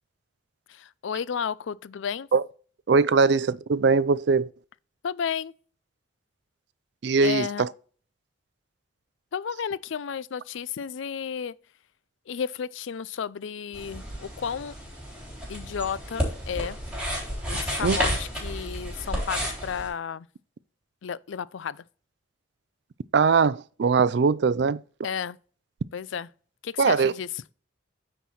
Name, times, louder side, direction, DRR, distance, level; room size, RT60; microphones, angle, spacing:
voice 1, 0.7-2.3 5.0-5.5 7.2-7.6 9.3-11.5 12.3-14.7 15.5-16.8 17.5-20.3 21.0-21.8 25.0-25.4 25.9-26.3 26.6-27.3, left 7 dB, 75° left, 0.4 m, -32 dB
voice 2, 2.9-4.5 7.0-7.7 17.8-18.0 23.1-24.8 26.8-27.1, right 5 dB, 60° right, 0.4 m, -21 dB
sound 1, 13.7-19.9, equal, 5° right, 3.4 m, -31 dB
9.3 x 4.6 x 4.2 m
head